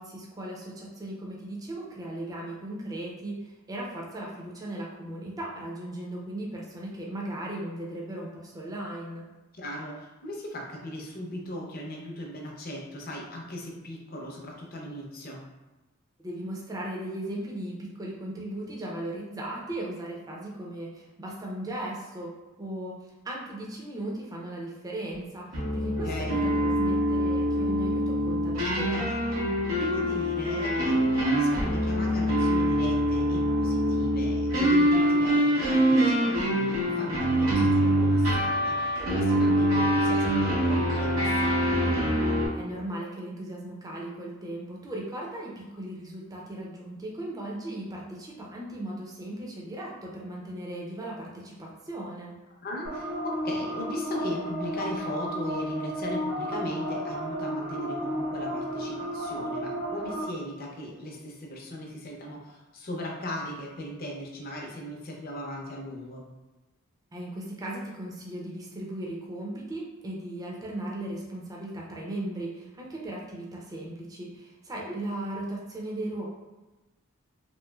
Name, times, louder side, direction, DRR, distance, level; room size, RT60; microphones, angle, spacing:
voice 1, 0.0-9.3 16.2-29.1 42.5-52.4 67.1-76.3, right 1 dB, 15° right, -3 dB, 0.4 m, -37 dB
voice 2, 9.5-15.4 26.0-26.4 29.8-41.8 52.6-66.2, equal, 45° left, -1 dB, 0.6 m, -38 dB
sound 1, 25.5-42.5, equal, 85° right, 1.3 m, -24 dB
sound 2, 52.9-60.2, equal, 70° right, 0.6 m, -33 dB
3.0 x 2.7 x 2.2 m, 1.1 s
head